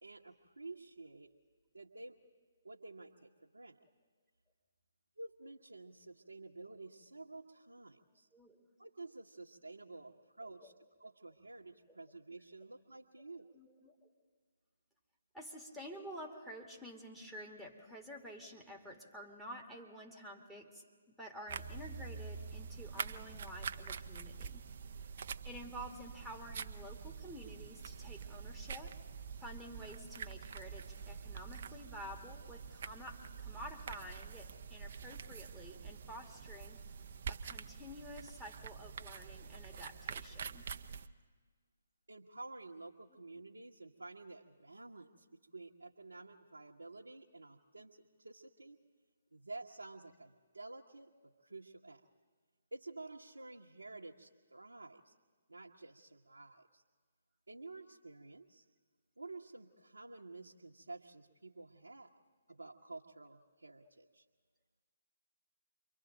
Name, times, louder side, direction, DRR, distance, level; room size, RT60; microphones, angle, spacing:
voice 1, 0.0-1.3 1.7-2.2 2.6-3.8 5.2-8.3 8.8-10.7 11.0-13.5 42.1-48.8 49.3-52.0 52.7-55.1 55.5-56.8 57.5-58.6 59.2-62.1 62.5-64.2, right 2 dB, 80° right, -3 dB, 1.1 m, -51 dB
voice 2, 8.3-8.6 10.4-10.7 11.9-12.0 13.5-14.1 15.3-24.6 25.4-29.0 29.4-36.8 37.3-40.7, equal, 5° left, 0 dB, 1.9 m, -50 dB
sound 1, 21.5-41.1, right 6 dB, 50° right, 0.7 m, -46 dB
28.5 x 23.5 x 3.9 m, 1.6 s
figure-of-eight pair, 135°, 0 cm